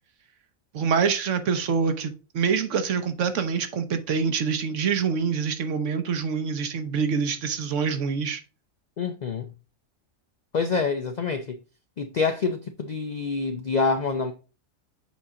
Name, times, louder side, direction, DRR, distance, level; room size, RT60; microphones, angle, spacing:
voice 1, 0.7-8.4, right 6 dB, 65° right, 1.1 m, -25 dB
voice 2, 9.0-9.5 10.5-11.6 12.0-14.3, left 4 dB, 65° left, 0.4 m, -26 dB
7.3 x 4.2 x 3.7 m
omnidirectional pair, 1.4 m